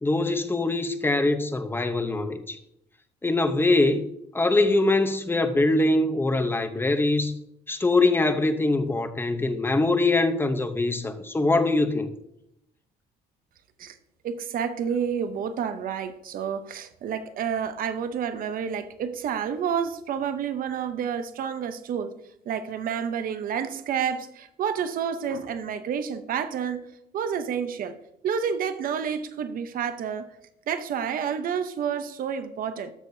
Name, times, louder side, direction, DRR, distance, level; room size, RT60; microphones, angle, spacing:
voice 1, 0.0-2.6 3.2-4.1 4.3-7.4 7.7-12.1, left 2 dB, 15° left, 0.8 m, -23 dB
voice 2, 14.2-22.1 22.5-26.8 27.1-28.0 28.2-30.3 30.7-32.9, right 7 dB, 55° right, 0.8 m, -29 dB
13.0 x 6.6 x 2.7 m
cardioid pair, 110°, 17 cm